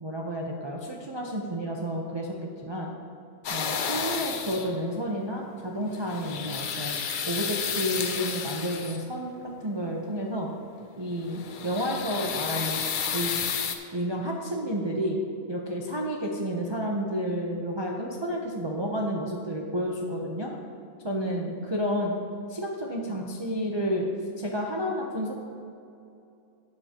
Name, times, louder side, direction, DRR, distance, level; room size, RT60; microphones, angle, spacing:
voice 1, 0.0-2.4 2.6-2.9 3.5-7.0 7.3-10.5 11.0-12.8 13.1-13.4 13.9-15.2 15.5-20.5 21.0-22.1 22.5-24.1 24.4-25.4, equal, 35° right, -1 dB, 0.4 m, -30 dB
sound 1, 3.4-4.8 5.9-9.1 11.2-13.8, left 6 dB, 85° left, 0.4 m, -31 dB
12.0 x 7.8 x 2.9 m, 2.6 s
omnidirectional pair, 1.6 m